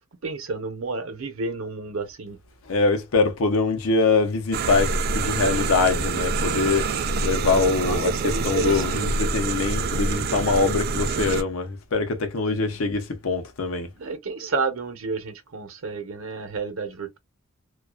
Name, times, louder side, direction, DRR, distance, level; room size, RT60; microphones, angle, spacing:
voice 1, 0.2-2.4 7.4-9.1 14.0-17.2, right 3 dB, 80° right, 0.8 m, -30 dB
voice 2, 2.7-6.9 7.2-13.9, left 4 dB, 90° left, 0.6 m, -23 dB
sound 1, 4.5-11.4, right 3 dB, 50° right, 0.4 m, -26 dB
2.4 x 2.3 x 2.3 m
head